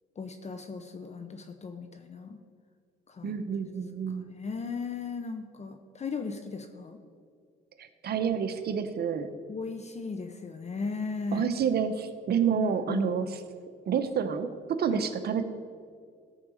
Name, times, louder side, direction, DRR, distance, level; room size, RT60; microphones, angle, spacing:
voice 1, 0.2-2.4 3.1-3.4 4.1-7.0 9.5-11.5 12.6-13.1 14.9-15.0, left 4 dB, 35° left, 7 dB, 0.8 m, -36 dB
voice 2, 3.2-4.3 7.8-9.3 11.3-13.3 13.9-15.4, right 7 dB, 55° right, 9 dB, 0.9 m, -29 dB
14.0 x 4.8 x 6.4 m, 2.1 s
cardioid pair, 80°, 20 cm